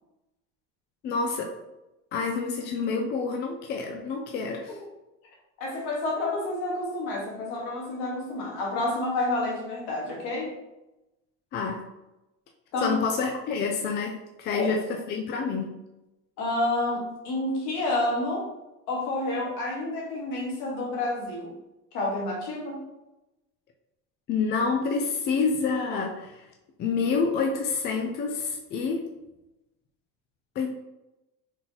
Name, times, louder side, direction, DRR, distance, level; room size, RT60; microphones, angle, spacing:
voice 1, 1.0-1.6 2.1-4.8 11.5-11.8 12.8-15.8 24.3-26.5 26.8-29.1 30.6-30.7, left 4 dB, 35° left, 3 dB, 0.4 m, -28 dB
voice 2, 5.6-10.5 12.7-12.9 14.5-14.8 16.4-18.5 18.9-21.6 21.9-22.8, left 2 dB, 70° left, -2 dB, 1.5 m, -29 dB
3.9 x 3.9 x 2.8 m, 0.96 s
cardioid pair, 150°, 32 cm